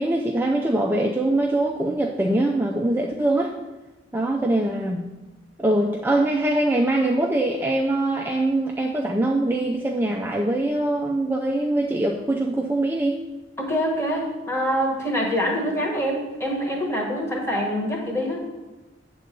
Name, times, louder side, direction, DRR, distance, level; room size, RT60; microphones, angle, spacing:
voice 1, 0.0-3.6 4.1-5.1 5.6-13.2, right 1 dB, 10° right, 0 dB, 0.4 m, -23 dB
voice 2, 13.6-18.4, equal, 15° left, -1 dB, 1.4 m, -25 dB
8.6 x 3.8 x 6.7 m, 1.1 s
head